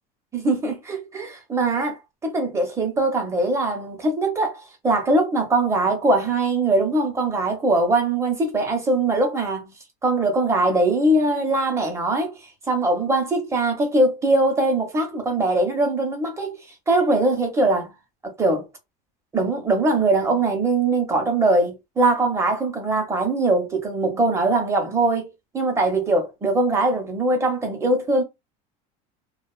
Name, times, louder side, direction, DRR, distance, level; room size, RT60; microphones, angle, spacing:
voice 1, 0.3-9.7 10.0-12.4 12.7-16.6 16.9-17.9 18.2-18.7 19.3-25.3 25.5-28.2, right 2 dB, 15° right, 0.8 m, -21 dB
2.4 x 2.3 x 2.3 m
cardioid pair, 145°, 19 cm